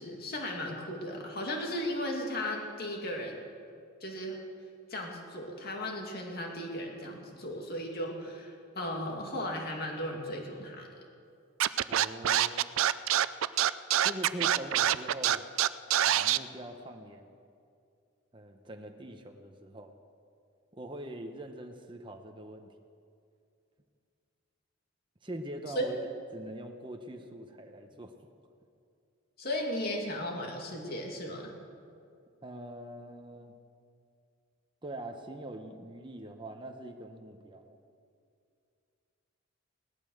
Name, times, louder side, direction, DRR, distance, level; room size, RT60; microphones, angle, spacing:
voice 1, 0.0-3.4 4.0-4.4 4.9-10.9 25.7-25.9 29.4-31.5, left 1 dB, 45° left, 1 dB, 2.5 m, -36 dB
Scratching (performance technique), 11.6-16.4, right 11 dB, 70° right, 0.4 m, -25 dB
voice 2, 11.9-12.7 14.0-15.5 16.0-17.4 18.3-19.9 20.7-22.7 25.2-28.1 32.4-33.5 34.8-37.8, right 1 dB, 20° right, 4 dB, 0.9 m, -43 dB
17.5 x 12.5 x 6.5 m, 2.4 s
head